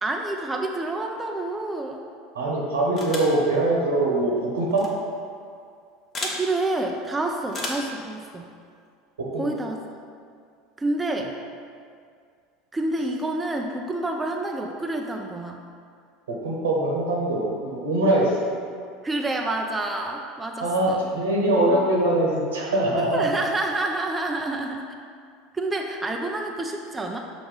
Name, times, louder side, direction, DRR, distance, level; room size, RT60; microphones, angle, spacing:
voice 1, 0.0-2.0 6.2-8.5 9.4-9.8 10.8-11.3 12.7-15.6 19.0-21.1 21.7-21.8 23.1-24.9 25.5-27.2, right 2 dB, 15° right, 2 dB, 0.5 m, -28 dB
voice 2, 2.3-4.9 9.2-9.5 16.3-18.4 20.6-23.4, right 1 dB, 75° right, -3 dB, 1.1 m, -23 dB
sound 1, 3.0-3.4 4.7-4.9 6.1-6.4 7.5-7.9, left 2 dB, 35° left, 1.1 m, -32 dB
6.3 x 3.0 x 5.1 m, 2.2 s
figure-of-eight pair, 75°, 0 cm